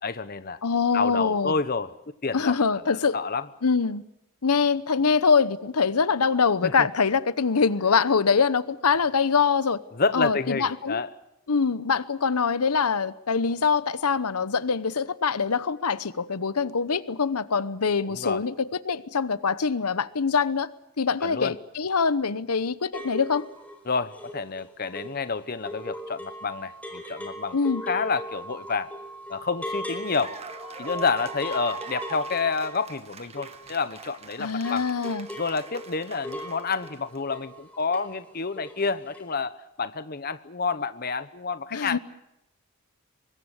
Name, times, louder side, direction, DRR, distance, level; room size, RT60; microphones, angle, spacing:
voice 1, 0.0-0.6 0.9-1.9 2.2-3.5 6.6-6.9 9.9-11.1 18.0-18.4 21.2-21.5 23.9-27.6 27.9-28.9 29.3-30.4 30.8-34.9 35.4-42.0, left 4 dB, 40° left, 0.9 m, -29 dB
voice 2, 0.6-1.5 2.3-3.2 3.6-4.0 4.4-9.8 10.1-11.0 11.5-20.7 21.0-23.4 27.5-27.8 34.4-35.3 41.7-42.0, left 5 dB, 85° left, 0.9 m, -24 dB
sound 1, 22.9-34.2 34.5-38.2 38.5-38.9 39.1-39.3, equal, 5° left, 4.0 m, -39 dB
Cheering / Applause, 29.6-37.2, right 5 dB, 25° right, 1.5 m, -44 dB
24.5 x 21.0 x 8.0 m
head